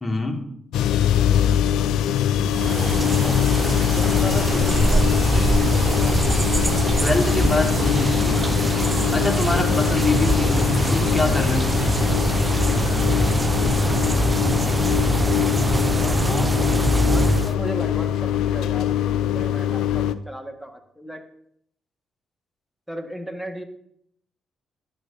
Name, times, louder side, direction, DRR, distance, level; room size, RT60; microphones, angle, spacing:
voice 1, 0.0-0.4 7.0-8.5 9.1-12.4 12.9-13.2 13.6-14.0 14.6-15.0 15.7-16.0, left 2 dB, 20° left, 2 dB, 1.8 m, -26 dB
sound 1, 0.7-20.1, left 10 dB, 75° left, 0.3 m, -22 dB
sound 2, 2.4-17.5, right 2 dB, 25° right, 0.3 m, -23 dB
voice 2, 3.2-6.1 10.1-10.4 12.1-12.5 15.9-16.5 17.1-18.9 19.3-21.2 22.9-23.6, right 1 dB, ahead, 4 dB, 1.4 m, -36 dB
11.0 x 6.2 x 2.6 m, 0.71 s
hypercardioid pair, 45°, 0 cm